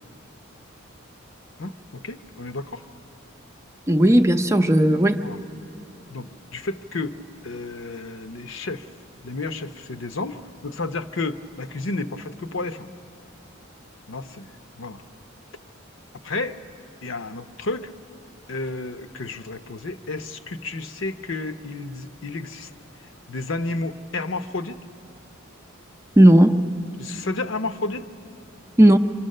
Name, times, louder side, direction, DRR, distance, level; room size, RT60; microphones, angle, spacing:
voice 1, 1.6-2.8 5.2-5.4 6.1-7.2 7.4-8.9 9.2-12.9 14.1-14.5 14.8-15.0 16.2-16.6 17.0-17.9 18.5-22.7 23.3-24.8 27.0-28.1, left 3 dB, 65° left, 9 dB, 0.8 m, -31 dB
voice 2, 3.9-5.2 26.2-26.6 28.8-29.0, right 1 dB, 15° right, 6 dB, 0.6 m, -14 dB
26.0 x 25.5 x 6.6 m, 2.6 s
head